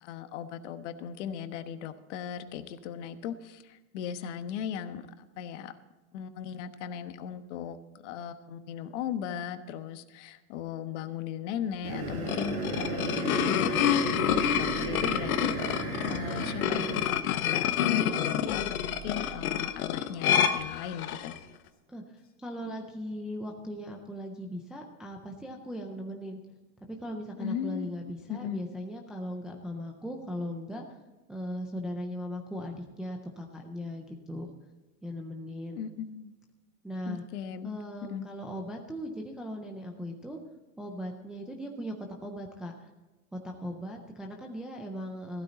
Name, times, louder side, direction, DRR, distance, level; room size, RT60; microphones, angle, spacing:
voice 1, 0.0-5.8 6.1-7.8 8.0-21.4 27.4-28.0 28.3-28.6 35.8-36.4 37.1-37.8 38.1-38.2, left 9 dB, 55° left, 10 dB, 1.2 m, -38 dB
sound 1, 11.8-17.0, right 3 dB, 90° right, 5.6 m, -34 dB
sound 2, 12.1-21.4, left 10 dB, 85° left, 1.1 m, -28 dB
sound 3, 14.3-15.6 17.4-17.5 18.5-19.8 21.6-21.7 22.2-22.3, right 5 dB, 30° left, 1.9 m, -46 dB
voice 2, 21.9-26.4 26.8-31.0 31.3-34.6 35.0-35.8 36.8-37.2 37.6-40.4 40.8-41.9 42.2-42.9 43.3-45.4, equal, ahead, 1 dB, 0.3 m, -38 dB
15.0 x 13.0 x 4.0 m, 1.2 s
supercardioid pair, 145°, 42 cm